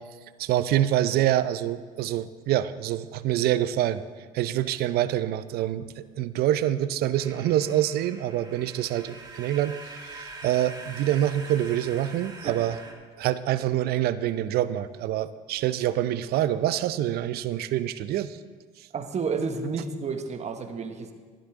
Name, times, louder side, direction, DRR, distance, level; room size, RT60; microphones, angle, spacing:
voice 1, 0.4-4.0 4.3-12.8 13.2-18.4, right 12 dB, 65° right, 14 dB, 0.6 m, -26 dB
sound 1, 7.1-12.9, right 3 dB, 25° right, 2.3 m, -44 dB
voice 2, 18.9-21.1, right 5 dB, 40° right, 7 dB, 1.3 m, -31 dB
13.0 x 11.0 x 3.7 m, 1.5 s
supercardioid pair, 70°, 18 cm